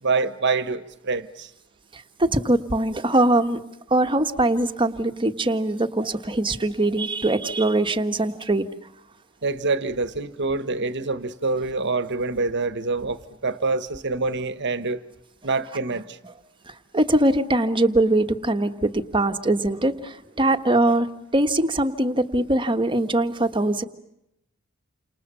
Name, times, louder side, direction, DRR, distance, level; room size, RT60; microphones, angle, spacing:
voice 1, 0.0-1.5 9.4-15.0 15.4-16.2, right 3 dB, 55° right, 12 dB, 1.3 m, -26 dB
voice 2, 1.9-3.6 3.9-8.7 16.7-21.1 21.3-23.8, right 1 dB, 25° right, 7 dB, 1.5 m, -22 dB
29.5 x 27.5 x 6.9 m, 0.83 s
head